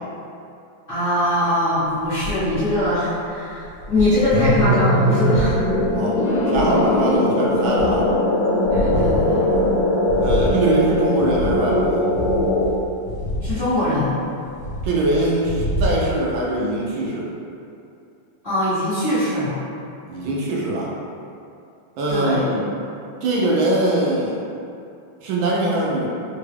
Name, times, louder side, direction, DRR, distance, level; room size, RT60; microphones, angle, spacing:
voice 1, 0.9-5.7 6.3-6.4 8.7-9.5 13.4-14.1 18.4-19.6 22.1-22.5, left 1 dB, 35° left, -16 dB, 1.1 m, -22 dB
sound 1, 2.0-2.9 3.5-7.2 7.5-8.2 8.6-14.1 14.4-16.2, equal, 65° left, 1.4 m, -28 dB
sound 2, 4.3-12.7, left 1 dB, 85° left, 1.4 m, -20 dB
voice 2, 6.5-8.1 10.2-12.0 14.8-17.3 20.1-20.9 22.0-22.6 23.2-24.4 25.2-26.1, right 1 dB, 80° right, -4 dB, 1.3 m, -22 dB
3.7 x 2.2 x 3.3 m, 2.6 s
omnidirectional pair, 2.2 m